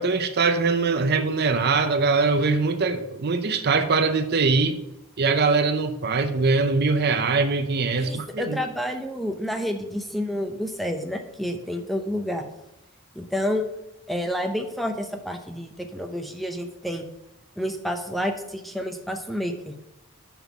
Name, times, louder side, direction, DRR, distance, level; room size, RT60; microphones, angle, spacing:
voice 1, 0.0-4.8 5.2-8.6, right 4 dB, 50° right, 9 dB, 0.6 m, -22 dB
voice 2, 8.0-12.4 13.2-13.7 14.1-17.1 17.6-19.7, equal, ahead, 5 dB, 0.6 m, -29 dB
5.8 x 5.5 x 5.9 m, 0.87 s
head